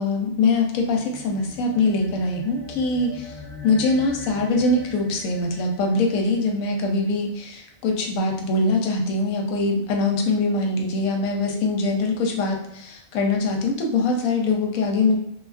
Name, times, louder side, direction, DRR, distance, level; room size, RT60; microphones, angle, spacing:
voice 1, 0.0-3.4 3.6-15.2, left 3 dB, 85° left, 1 dB, 1.0 m, -23 dB
sound 1, 0.6-7.3, left 3 dB, 40° left, 0.7 m, -42 dB
3.1 x 2.3 x 2.4 m, 0.78 s
omnidirectional pair, 1.4 m